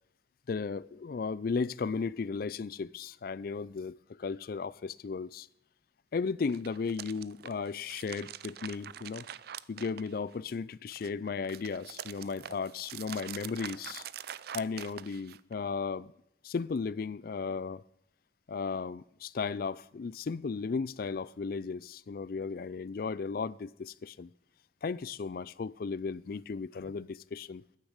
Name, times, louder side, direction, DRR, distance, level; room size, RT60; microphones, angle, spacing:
voice 1, 0.5-5.5 6.1-9.3 9.7-14.1 14.5-16.1 16.4-17.8 18.5-24.3 24.8-27.6, left 5 dB, 55° left, 0.4 m, -35 dB
sound 1, 6.4-10.5 10.9-15.5, right 10 dB, 55° right, 0.4 m, -45 dB
10.0 x 9.3 x 8.0 m
head